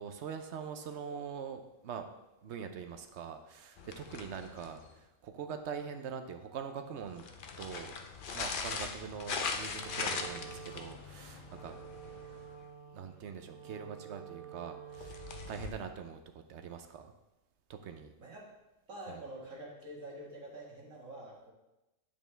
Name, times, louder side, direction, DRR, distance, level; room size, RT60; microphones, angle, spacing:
voice 1, 0.0-2.1 2.4-7.3 7.6-7.9 8.3-11.8 12.9-15.2 15.5-17.1 17.7-18.1 19.1-19.2, right 7 dB, 65° right, 7 dB, 0.9 m, -43 dB
sound 1, 3.8-5.0 7.0-12.6 14.9-15.7, left 5 dB, 50° left, 0.7 m, -40 dB
Wind instrument woodwind instrument, 9.7-15.7, right 8 dB, 50° right, 1.1 m, -50 dB
voice 2, 18.2-18.5 18.9-21.5, right 1 dB, 90° right, -3 dB, 2.0 m, -46 dB
9.1 x 5.2 x 3.3 m, 0.97 s
omnidirectional pair, 1.3 m